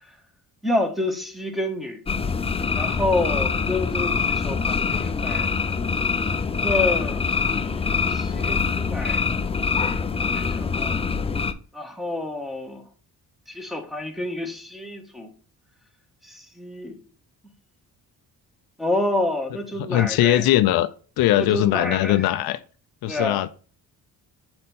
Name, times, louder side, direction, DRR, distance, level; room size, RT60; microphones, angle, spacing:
voice 1, 0.6-2.0 2.7-5.5 6.6-9.3 9.8-11.0 11.7-12.8 13.5-15.3 16.2-17.0 18.8-20.4 21.4-22.3 23.1-23.4, left 1 dB, ahead, 1.3 m, -28 dB
sound 1, 2.1-11.5, left 5 dB, 15° left, 0.4 m, -24 dB
voice 2, 19.8-20.9 21.2-22.6 23.0-23.5, left 14 dB, 70° left, 0.5 m, -20 dB
4.4 x 4.2 x 5.4 m
cardioid pair, 90°, 37 cm